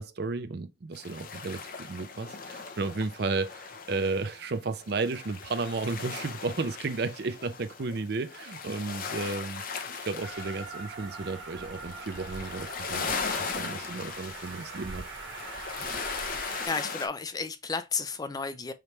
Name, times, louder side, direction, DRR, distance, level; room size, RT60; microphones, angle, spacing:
voice 1, 0.0-9.6 10.0-15.0, right 3 dB, 60° right, 0.5 m, -33 dB
sound 1, 0.9-17.1, left 5 dB, 50° left, 0.7 m, -38 dB
Train, 10.2-16.7, right 3 dB, 80° right, 1.7 m, -42 dB
voice 2, 16.6-18.7, left 4 dB, 20° left, 0.4 m, -32 dB
5.0 x 3.1 x 3.1 m
head